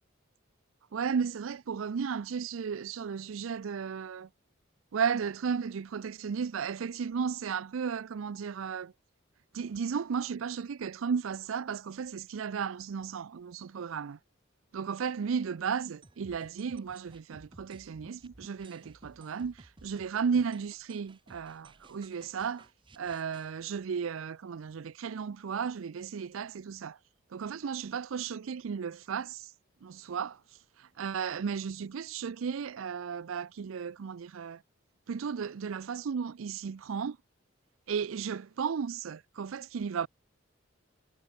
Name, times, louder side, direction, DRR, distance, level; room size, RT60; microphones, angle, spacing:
voice 1, 0.9-4.3 4.9-8.9 9.5-14.2 14.7-22.7 23.0-27.0 27.3-29.5 29.8-30.4 30.8-34.6 35.1-37.2 37.9-40.1, right 6 dB, 75° right, 0.4 m, -34 dB
sound 1, 16.0-23.5, right 2 dB, 25° right, 0.9 m, -56 dB
head